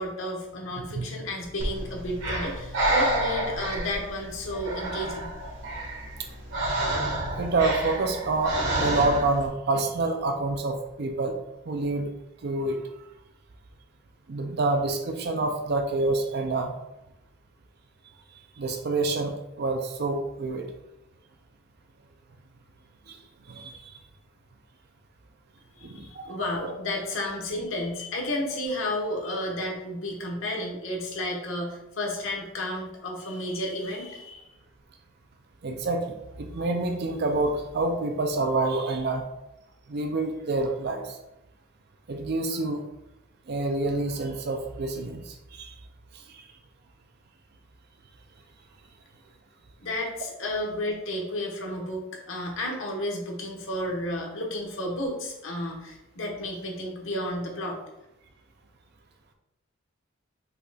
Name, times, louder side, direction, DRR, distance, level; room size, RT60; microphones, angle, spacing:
voice 1, 0.0-5.3 25.7-34.5 49.8-57.8, left 1 dB, 90° left, 0 dB, 1.2 m, -32 dB
Breathing, 1.6-9.5, right 1 dB, 70° right, 1.6 m, -29 dB
voice 2, 7.4-11.3 11.7-12.1 12.4-12.8 14.3-16.7 18.6-20.7 23.1-23.2 23.5-24.0 25.8-26.4 26.6-26.7 35.6-39.2 39.9-41.0 42.1-42.8 43.5-45.7 46.3-46.4, right 2 dB, 55° right, 4 dB, 0.5 m, -27 dB
5.6 x 4.0 x 2.3 m, 0.91 s
head